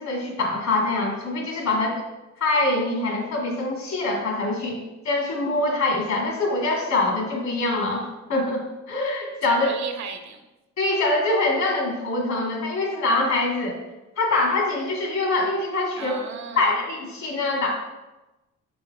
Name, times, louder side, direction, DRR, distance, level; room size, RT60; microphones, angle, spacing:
voice 1, 0.0-2.0 2.4-4.8 5.0-9.7 10.8-13.8 14.2-16.2 16.6-17.7, left 2 dB, 65° left, -1 dB, 2.3 m, -24 dB
voice 2, 1.6-2.0 9.4-10.5 15.9-16.8, right 6 dB, 65° right, 6 dB, 0.9 m, -36 dB
6.2 x 5.5 x 3.4 m, 1.0 s
cardioid pair, 90°, 30 cm